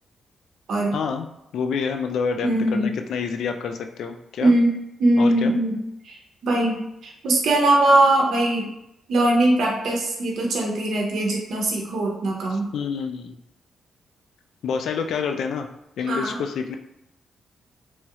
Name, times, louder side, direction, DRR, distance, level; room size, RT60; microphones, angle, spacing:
voice 1, 0.9-1.3 1.5-4.5 5.2-5.5 12.5-13.4 14.6-15.7 16.0-16.8, left 6 dB, 80° left, 6 dB, 0.3 m, -28 dB
voice 2, 2.4-2.9 4.4-5.8 6.0-6.2 6.4-8.7 9.1-12.7 16.1-16.4, right 1 dB, 70° right, -1 dB, 0.6 m, -21 dB
3.0 x 2.3 x 2.8 m, 0.84 s
cardioid pair, 120°, 0 cm